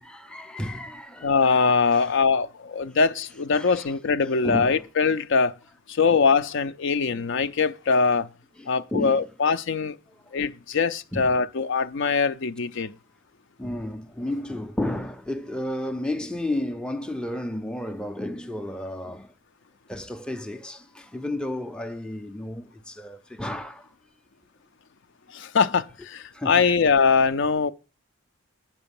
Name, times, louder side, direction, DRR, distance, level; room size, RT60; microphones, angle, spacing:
voice 1, 0.0-2.1 3.5-3.9 4.2-4.9 6.0-6.2 7.1-7.3 8.6-9.3 11.1-11.4 13.6-19.3 19.9-23.9 26.3-26.7, left 1 dB, 5° left, 0.5 m, -33 dB
voice 2, 1.2-5.5 6.0-8.3 8.7-9.9 10.3-12.9 25.3-27.7, left 5 dB, 60° left, 0.5 m, -22 dB
8.6 x 6.1 x 7.0 m
head